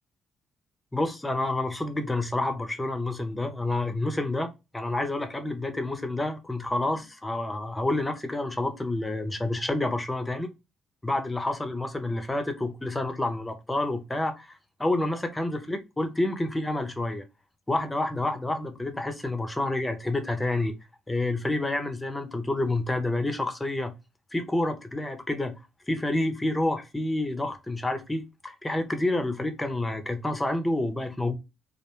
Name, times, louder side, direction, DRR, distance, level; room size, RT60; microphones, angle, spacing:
voice 1, 0.9-10.5 11.0-17.2 17.7-20.7 21.1-23.9 24.3-25.6 25.9-31.3, left 2 dB, 15° left, 0.6 m, -29 dB
2.4 x 2.1 x 3.0 m
cardioid pair, 75°, 0 cm